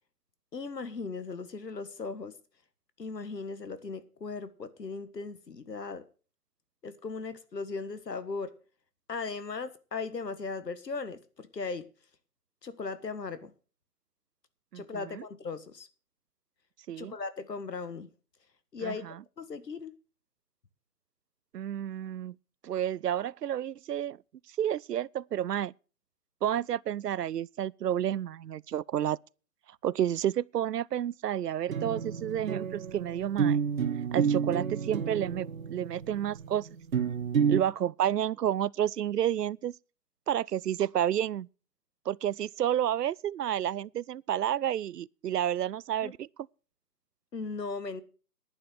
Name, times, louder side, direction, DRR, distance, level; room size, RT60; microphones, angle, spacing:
voice 1, 0.5-2.3 3.0-6.0 6.8-8.5 9.1-11.8 12.6-13.5 14.7-15.9 17.0-18.1 18.7-19.9 46.0-46.1 47.3-48.0, left 4 dB, 80° left, 1.8 m, -38 dB
voice 2, 14.7-15.2 16.9-17.1 18.8-19.1 21.5-22.3 22.6-24.2 24.6-25.7 26.4-29.2 29.8-33.6 34.1-36.7 37.5-39.7 40.3-41.5 42.1-46.3, right 10 dB, 75° right, 0.6 m, -30 dB
sound 1, 31.7-37.6, right 7 dB, 55° right, 1.0 m, -30 dB
11.0 x 9.3 x 6.6 m
figure-of-eight pair, 160°, 49 cm